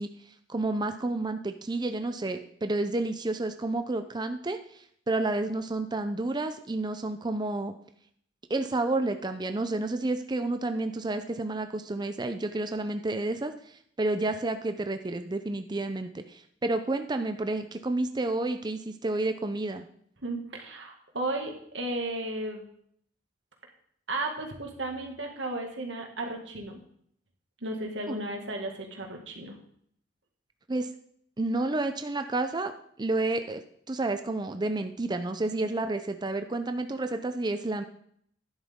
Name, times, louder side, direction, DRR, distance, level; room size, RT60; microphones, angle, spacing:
voice 1, 0.0-7.7 8.5-19.9 28.1-28.2 30.7-30.9 31.4-37.8, right 2 dB, 25° right, 8 dB, 0.5 m, -30 dB
voice 2, 20.2-22.6 24.1-26.8 27.6-29.6, right 2 dB, 90° right, 2 dB, 2.1 m, -34 dB
11.5 x 10.5 x 3.7 m, 0.66 s
head